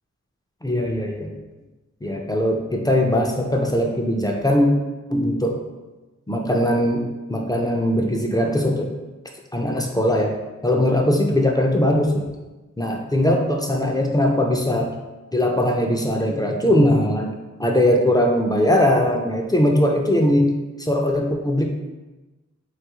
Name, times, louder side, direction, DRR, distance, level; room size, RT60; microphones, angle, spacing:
voice 1, 0.6-1.3 2.0-4.7 5.1-5.6 6.3-8.9 9.5-10.4 10.6-12.3 12.8-15.0 15.3-17.3 17.6-21.7, left 1 dB, 15° left, 1 dB, 0.4 m, -20 dB
3.2 x 2.4 x 2.9 m, 1.1 s
wide cardioid pair, 55°, 29 cm